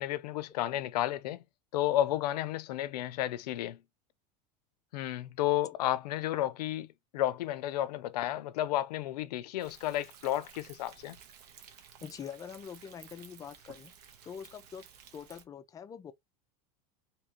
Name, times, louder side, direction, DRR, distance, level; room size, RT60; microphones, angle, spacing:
voice 1, 0.0-1.4 1.7-3.8 4.9-6.9 7.1-11.2, left 13 dB, 90° left, 0.5 m, -32 dB
Thunder, 9.6-15.4, right 7 dB, 80° right, 0.8 m, -55 dB
voice 2, 12.0-13.9 14.2-14.9 15.1-16.1, left 7 dB, 15° left, 0.3 m, -44 dB
2.9 x 2.4 x 2.9 m
supercardioid pair, 130°, 20 cm